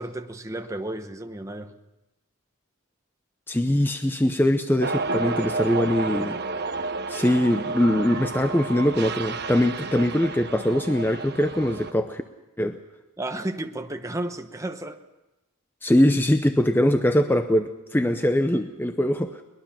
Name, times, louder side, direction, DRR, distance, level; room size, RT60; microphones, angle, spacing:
voice 1, 0.0-1.7 13.2-15.0, right 1 dB, 15° right, 0.9 m, -32 dB
voice 2, 3.5-6.4 7.1-12.2 12.6-12.8 15.8-19.4, left 1 dB, 10° left, 0.6 m, -22 dB
sound 1, 4.8-11.9, right 3 dB, 45° right, 1.1 m, -31 dB
22.5 x 20.5 x 5.8 m
head